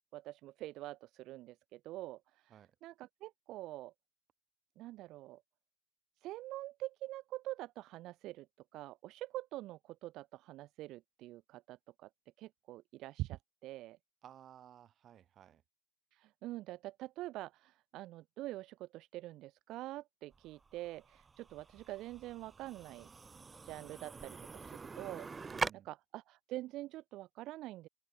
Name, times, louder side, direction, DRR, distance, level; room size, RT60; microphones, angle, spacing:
voice 1, 0.1-2.5 2.8-3.9 4.8-5.4 6.2-8.5 8.7-12.1 12.4-14.0 16.1-23.1 23.7-25.5 25.8-27.9, right 16 dB, 85° right, 1.1 m, -45 dB
voice 2, 14.2-15.6 25.5-25.9, right 10 dB, 55° right, 4.6 m, -57 dB
sound 1, 20.3-25.7, right 4 dB, 25° right, 0.7 m, -44 dB
cardioid pair, 120°, 0 cm